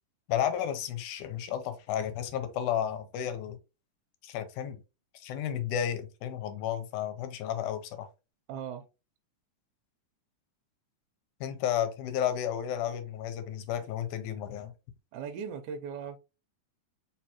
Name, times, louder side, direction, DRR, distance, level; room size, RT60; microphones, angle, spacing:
voice 1, 0.3-3.6 4.2-4.8 5.1-8.1 11.4-14.7, left 10 dB, 85° left, 2.1 m, -32 dB
voice 2, 8.5-8.9 15.1-16.2, right 7 dB, 80° right, 2.0 m, -38 dB
4.4 x 3.3 x 2.9 m
omnidirectional pair, 3.6 m